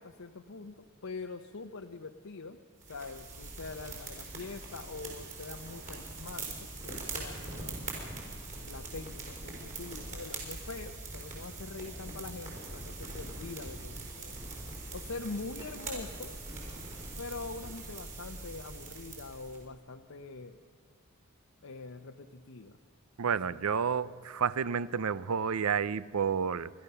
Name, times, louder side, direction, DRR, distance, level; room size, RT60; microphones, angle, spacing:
voice 1, 0.0-2.6 2.9-7.8 8.6-14.4 14.9-16.4 17.2-20.6 21.6-22.8 23.2-23.6, left 3 dB, 70° left, 3 dB, 0.8 m, -44 dB
sound 1, 2.8-19.6, right 3 dB, 35° right, 5.1 m, -42 dB
voice 2, 23.2-26.7, right 6 dB, 80° right, 18 dB, 0.5 m, -30 dB
30.0 x 13.0 x 6.8 m, 2.3 s
head